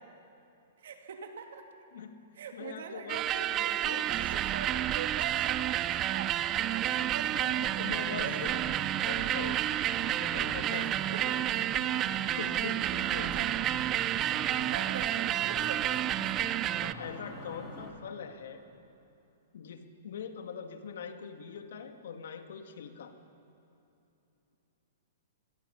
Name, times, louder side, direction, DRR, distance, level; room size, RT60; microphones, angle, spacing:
voice 1, 0.8-1.6 2.4-7.9 8.2-8.6 10.7-10.9 11.1-11.4 13.2-13.5 14.6-16.4, right 6 dB, 70° right, 4 dB, 2.6 m, -43 dB
voice 2, 2.5-4.1 7.3-8.5 9.0-9.6 10.2-11.2 12.2-13.5 14.5-14.6 16.8-18.6 19.5-23.1, left 7 dB, 70° left, 6 dB, 1.8 m, -42 dB
sound 1, 3.1-16.9, right 12 dB, 25° right, 0.4 m, -30 dB
sound 2, 6.5-17.9, left 1 dB, ahead, 2.8 m, -45 dB
26.5 x 20.5 x 5.8 m, 2.9 s
hypercardioid pair, 155°, 0 cm